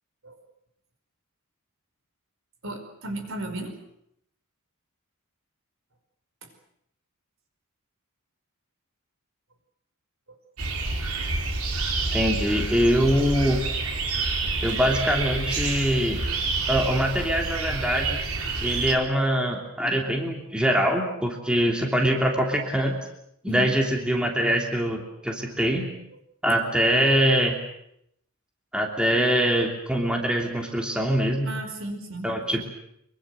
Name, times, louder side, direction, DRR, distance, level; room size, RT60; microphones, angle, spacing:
voice 1, 2.6-3.7 23.4-23.7 31.4-32.3, right 2 dB, 60° right, 6 dB, 5.0 m, -34 dB
sound 1, 10.6-19.0, right 3 dB, 80° right, 4.1 m, -28 dB
voice 2, 12.1-13.6 14.6-16.2 16.7-18.2 18.6-23.0 23.4-25.9 26.4-27.6 28.7-31.5 32.2-32.7, equal, 5° right, 1 dB, 3.1 m, -23 dB
24.5 x 23.5 x 7.8 m, 0.76 s
head